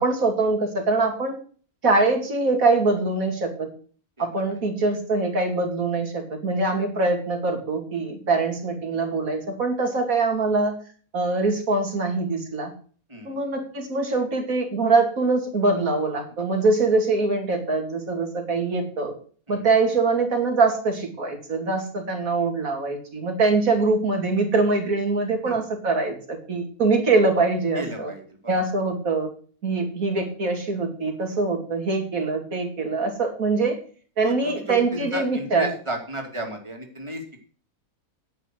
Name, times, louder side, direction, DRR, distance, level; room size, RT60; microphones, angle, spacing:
voice 1, 0.0-1.3 1.8-3.7 4.2-10.8 11.1-12.7 13.2-19.1 19.5-28.1 28.5-29.3 29.6-33.8 34.2-35.7, right 3 dB, 65° right, 3 dB, 3.0 m, -23 dB
voice 2, 4.2-4.5 13.1-13.4 19.5-19.6 25.4-25.5 27.7-28.5 34.2-37.4, right 1 dB, 20° right, 2 dB, 2.7 m, -34 dB
10.5 x 8.2 x 6.2 m, 0.42 s
omnidirectional pair, 1.6 m